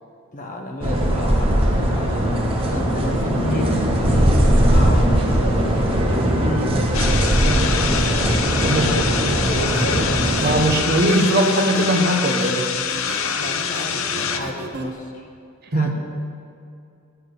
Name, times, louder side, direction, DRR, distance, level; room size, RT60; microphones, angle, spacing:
voice 1, 0.3-6.1 6.5-7.1 8.7-10.1 13.3-15.3 15.7-16.0, left 1 dB, 35° left, 2 dB, 1.3 m, -31 dB
sound 1, 0.8-10.7, equal, 25° right, 1.3 m, -19 dB
sound 2, 5.6-14.9, right 2 dB, 70° right, 1.2 m, -33 dB
sound 3, 6.9-14.4, left 7 dB, 65° left, 0.7 m, -25 dB
voice 2, 8.6-9.0 10.4-12.7 15.7-15.9, right 1 dB, 45° right, 3 dB, 1.1 m, -20 dB
9.7 x 7.3 x 8.0 m, 2.5 s
head